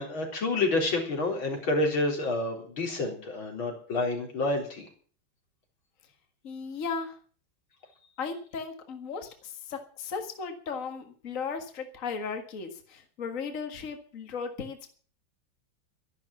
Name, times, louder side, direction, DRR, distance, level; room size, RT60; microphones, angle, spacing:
voice 1, 0.0-4.9, left 2 dB, 90° left, 2 dB, 4.7 m, -29 dB
voice 2, 6.4-7.2 8.2-14.9, left 5 dB, 40° left, 6 dB, 2.0 m, -36 dB
13.0 x 12.0 x 7.2 m, 0.43 s
omnidirectional pair, 2.1 m